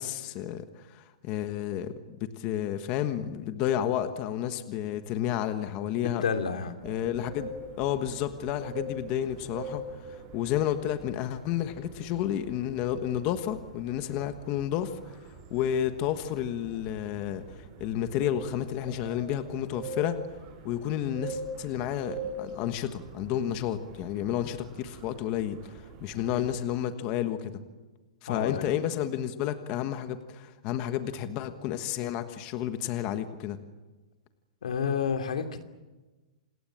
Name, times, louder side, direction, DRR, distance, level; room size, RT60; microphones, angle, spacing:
voice 1, 0.0-1.9 2.2-6.2 6.8-7.5 7.8-15.2 15.5-20.2 20.6-27.6 28.2-33.6, left 11 dB, 30° left, 9 dB, 1.4 m, -31 dB
voice 2, 6.0-6.8 26.3-26.4 28.3-28.7 34.6-35.6, left 6 dB, 85° left, 7 dB, 2.8 m, -30 dB
sound 1, 6.8-26.6, right 2 dB, 25° right, 6.6 m, -44 dB
27.0 x 20.0 x 8.8 m, 1.2 s
hypercardioid pair, 170°, 4 cm